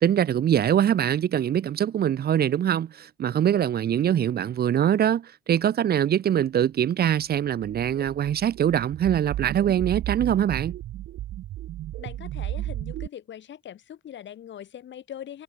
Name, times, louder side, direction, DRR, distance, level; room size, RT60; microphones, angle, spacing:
voice 1, 0.0-10.8, right 10 dB, 50° right, 0.7 m, -23 dB
sound 1, 7.6-13.1, right 14 dB, 80° right, 1.7 m, -34 dB
voice 2, 12.0-15.4, left 10 dB, 65° left, 7.5 m, -41 dB
cardioid pair, 90°, 20 cm